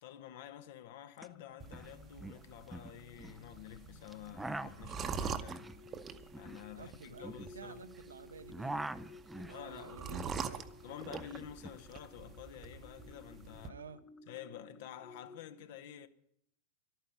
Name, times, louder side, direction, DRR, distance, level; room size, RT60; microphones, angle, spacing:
voice 1, 0.0-5.6 6.4-7.8 9.5-10.1 10.8-13.8 14.3-16.1, left 10 dB, 50° left, 0.9 m, -50 dB
sound 1, 1.2-1.3 1.5-1.9 2.2-3.4 4.1-8.0 8.3-10.6 10.8-11.8, right 2 dB, 5° right, 0.5 m, -44 dB
sound 2, 1.3-15.4, left 3 dB, 20° left, 0.8 m, -57 dB
sound 3, 1.6-13.7, right 6 dB, 25° right, 0.9 m, -45 dB
voice 2, 6.7-8.9 9.3-10.7 13.7-14.0, right 5 dB, 70° right, 0.8 m, -51 dB
12.5 x 9.2 x 8.9 m
figure-of-eight pair, 90°, 0 cm